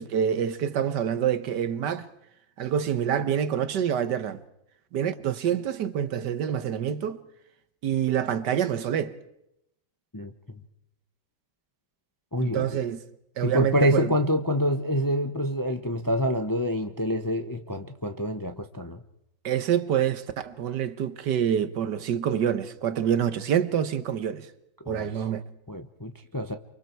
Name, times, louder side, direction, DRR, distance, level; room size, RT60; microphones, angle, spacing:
voice 1, 0.0-2.1 2.6-4.4 4.9-7.2 7.8-9.2 12.4-13.0 13.4-14.1 19.4-24.5 24.9-25.4, right 9 dB, 70° right, 1.6 m, -26 dB
voice 2, 10.1-10.6 12.3-12.8 13.4-19.0 24.9-25.1 25.7-26.5, equal, 15° left, 0.7 m, -27 dB
29.5 x 24.0 x 4.5 m
omnidirectional pair, 2.0 m